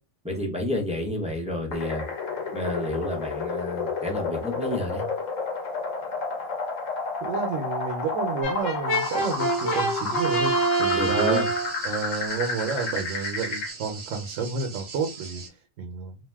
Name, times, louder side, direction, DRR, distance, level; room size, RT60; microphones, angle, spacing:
voice 1, 0.2-2.0 2.5-5.0 11.0-11.5, left 1 dB, 10° right, 0 dB, 0.4 m, -30 dB
sound 1, 1.7-13.7, left 4 dB, 90° left, 1.1 m, -31 dB
voice 2, 7.2-11.4 11.8-15.4 15.8-16.2, right 5 dB, 85° right, 3 dB, 1.0 m, -30 dB
Brass instrument, 8.4-11.7, right 2 dB, 60° left, 0.9 m, -26 dB
sound 2, 8.9-15.5, right 4 dB, 65° right, 1.0 m, -41 dB
2.7 x 2.0 x 3.3 m, 0.29 s
omnidirectional pair, 1.3 m